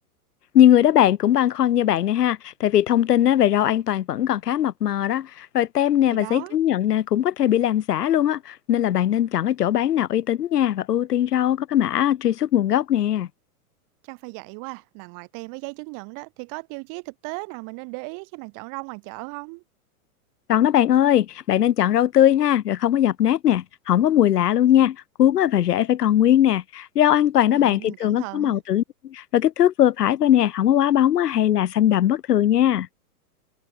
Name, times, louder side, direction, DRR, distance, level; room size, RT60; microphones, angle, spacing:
voice 1, 0.5-5.3 5.5-13.3 20.5-28.8 29.1-32.9, left 11 dB, 85° left, 1.3 m, -20 dB
voice 2, 6.1-6.6 14.0-19.6 27.5-28.6, right 35 dB, 40° right, 4.7 m, -37 dB
hypercardioid pair, 130°, 46 cm